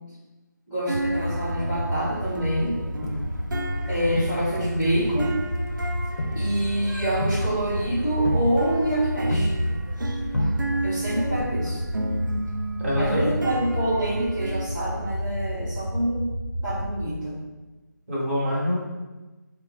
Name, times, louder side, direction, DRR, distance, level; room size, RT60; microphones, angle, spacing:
voice 1, 0.7-2.8 3.9-5.4 6.3-9.5 10.8-11.8 13.0-16.3 16.6-17.4, right 1 dB, ahead, -20 dB, 0.3 m, -26 dB
sound 1, 0.9-17.1, equal, 55° right, 1.1 m, -30 dB
sound 2, 0.9-7.3 7.7-14.7, right 2 dB, 80° right, 0.4 m, -34 dB
Crowd, 3.0-4.8 5.1-10.1 10.3-11.0 11.4-11.5, left 1 dB, 60° left, 0.6 m, -30 dB
voice 2, 12.8-13.3 18.1-18.7, equal, 40° right, -7 dB, 1.2 m, -25 dB
4.1 x 2.0 x 3.4 m, 1.1 s
figure-of-eight pair, 160°, 10 cm